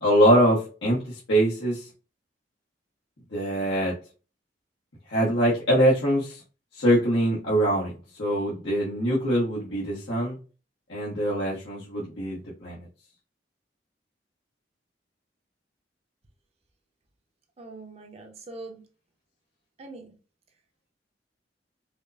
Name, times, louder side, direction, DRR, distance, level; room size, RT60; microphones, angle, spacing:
voice 1, 0.0-1.9 3.3-3.9 5.1-6.4 6.8-10.4 10.9-12.9, equal, 85° left, 1.1 m, -23 dB
voice 2, 17.6-18.8 19.8-20.1, right 2 dB, 35° right, 0.7 m, -42 dB
4.8 x 2.1 x 2.6 m
head